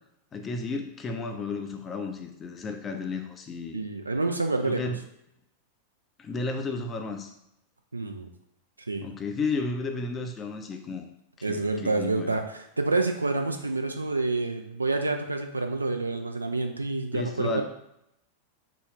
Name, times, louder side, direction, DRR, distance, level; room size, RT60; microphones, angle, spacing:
voice 1, 0.3-3.8 4.6-5.0 6.2-7.3 9.0-11.0 11.5-12.4 17.1-17.6, left 3 dB, 25° left, 5 dB, 0.5 m, -33 dB
voice 2, 3.7-4.9 7.9-8.3 8.9-9.1 11.4-17.6, right 3 dB, 80° right, 5 dB, 0.3 m, -28 dB
3.8 x 2.3 x 3.4 m, 0.80 s
figure-of-eight pair, 90°, 0 cm